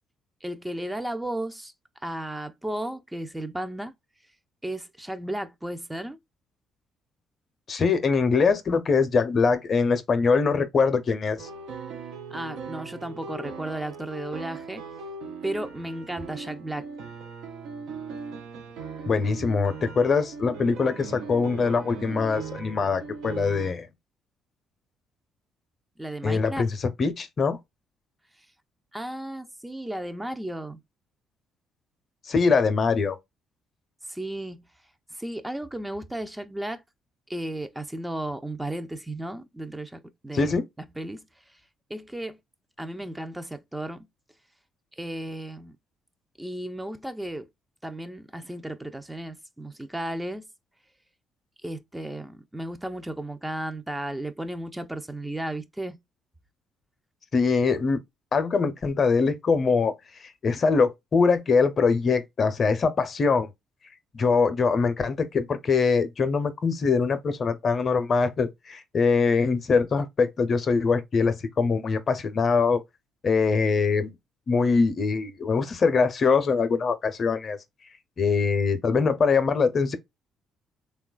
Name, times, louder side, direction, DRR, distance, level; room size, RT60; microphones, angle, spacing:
voice 1, 0.4-1.7 2.0-3.9 4.6-6.2 12.3-14.8 15.4-16.9 26.0-26.7 28.9-30.8 34.1-34.6 35.1-36.8 37.3-41.2 41.9-42.4 42.8-44.1 45.0-45.7 46.4-47.5 47.8-50.5 51.6-56.0, right 1 dB, 10° right, 0.4 m, -34 dB
voice 2, 7.7-11.5 19.1-23.9 26.2-26.7 27.0-27.6 32.3-33.2 40.3-40.6 57.3-58.0 58.3-59.9 60.4-63.5 64.1-72.8 73.2-74.1 74.5-77.6 78.2-80.0, left 4 dB, 50° left, 0.5 m, -23 dB
sound 1, 11.4-23.7, right 5 dB, 75° right, 0.5 m, -39 dB
3.1 x 2.3 x 2.2 m
supercardioid pair, 60°, 0 cm